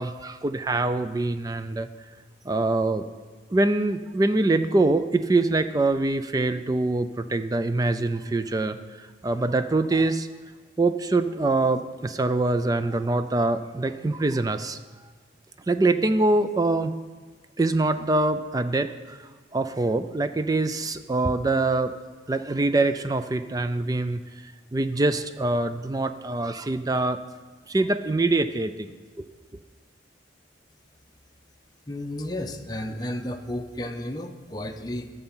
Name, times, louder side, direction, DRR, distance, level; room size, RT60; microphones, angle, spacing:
voice 1, 0.0-1.9 2.5-3.0 3.5-10.3 10.8-14.8 15.7-16.9 17.6-19.2 19.5-21.9 22.3-27.2 27.7-29.3, right 2 dB, 20° right, 10 dB, 0.3 m, -24 dB
voice 2, 31.9-35.1, left 1 dB, 20° left, 4 dB, 0.6 m, -33 dB
13.5 x 6.8 x 5.5 m, 1.4 s
head